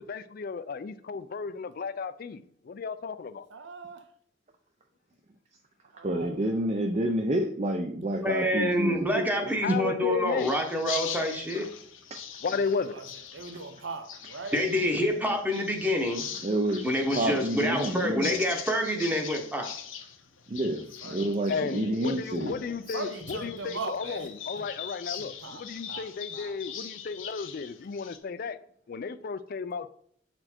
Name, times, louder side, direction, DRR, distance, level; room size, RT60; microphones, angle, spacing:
voice 1, 0.0-3.4 9.6-10.6 12.4-13.0 21.5-28.6 28.9-29.9, left 5 dB, 45° left, 0.4 m, -34 dB
voice 2, 3.5-4.0 5.9-6.8 8.1-8.4 12.5-13.1 13.3-14.6 21.0-21.7 22.9-24.3 24.6-24.7 25.2-26.5, right 3 dB, 60° right, 0.8 m, -41 dB
voice 3, 6.0-9.8 12.1-12.2 16.4-18.4 20.5-20.8 21.1-22.5, right 1 dB, 30° right, 0.5 m, -29 dB
voice 4, 8.1-11.7 14.5-16.3 16.8-19.7, equal, 10° right, 0.9 m, -27 dB
sound 1, 10.4-28.2, left 8 dB, 70° left, 0.8 m, -41 dB
7.7 x 4.2 x 4.4 m
head